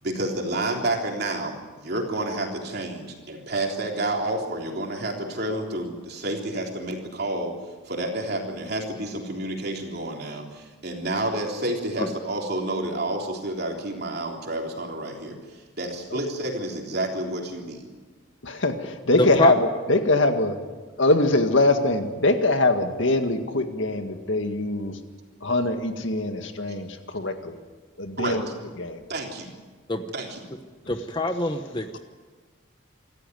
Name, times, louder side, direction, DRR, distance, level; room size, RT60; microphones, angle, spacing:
voice 1, 0.0-7.6 7.9-17.9 28.2-28.4 29.1-29.5 30.1-30.4, right 1 dB, 50° right, 1 dB, 3.6 m, -30 dB
voice 2, 18.4-20.6 21.0-25.0 25.4-27.6 28.0-28.5 28.8-29.0, left 2 dB, 70° left, 6 dB, 1.9 m, -23 dB
voice 3, 19.2-19.5 29.9-30.0 30.9-32.0, left 2 dB, 25° left, 7 dB, 1.0 m, -25 dB
26.0 x 14.0 x 9.5 m, 1.4 s
head